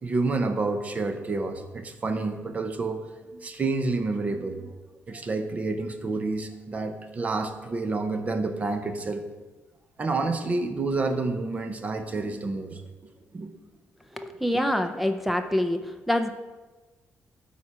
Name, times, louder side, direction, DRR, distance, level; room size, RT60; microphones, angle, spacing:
voice 1, 0.0-3.0 3.3-4.7 5.1-9.2 10.0-12.8 13.3-13.5 14.3-14.5, right 3 dB, 30° right, 7 dB, 0.9 m, -29 dB
voice 2, 14.2-15.8 16.1-16.3, left 1 dB, ahead, 7 dB, 0.5 m, -25 dB
12.0 x 4.2 x 5.0 m, 1.2 s
cardioid pair, 125°, 5 cm